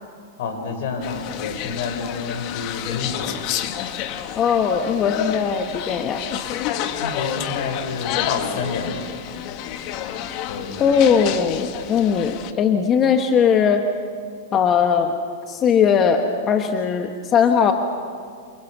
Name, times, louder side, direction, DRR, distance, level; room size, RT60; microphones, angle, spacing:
voice 1, 0.4-3.4 7.0-9.0 10.5-11.2, left 4 dB, 65° left, 5 dB, 5.4 m, -29 dB
sound 1, 1.0-12.5, left 10 dB, 45° left, 1.7 m, -30 dB
voice 2, 4.3-6.2 10.8-13.9 14.5-15.1 15.5-17.7, left 7 dB, 25° left, 5 dB, 1.4 m, -19 dB
29.0 x 27.5 x 6.2 m, 2.1 s
supercardioid pair, 145°, 0 cm